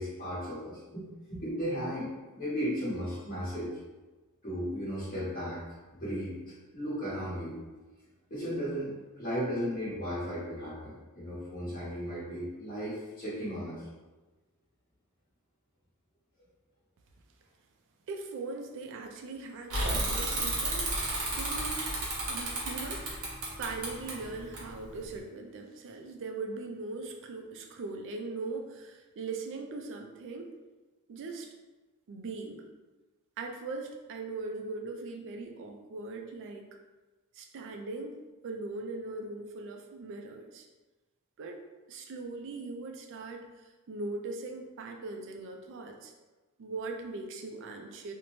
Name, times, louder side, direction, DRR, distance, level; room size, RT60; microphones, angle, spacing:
voice 1, 0.0-3.7 4.4-5.6 5.9-6.4 6.7-7.6 8.3-13.8, equal, 40° left, -11 dB, 1.0 m, -35 dB
voice 2, 18.1-21.1 21.4-22.0 22.3-30.5 31.1-31.5 32.1-32.6 33.4-36.6 37.3-38.2 38.4-40.7 41.4-43.4 43.9-46.1 46.6-48.1, right 3 dB, 60° right, 4 dB, 0.4 m, -40 dB
Bicycle / Mechanisms, 19.7-25.2, right 2 dB, 90° right, 0.8 m, -32 dB
2.6 x 2.1 x 2.9 m, 1.2 s
head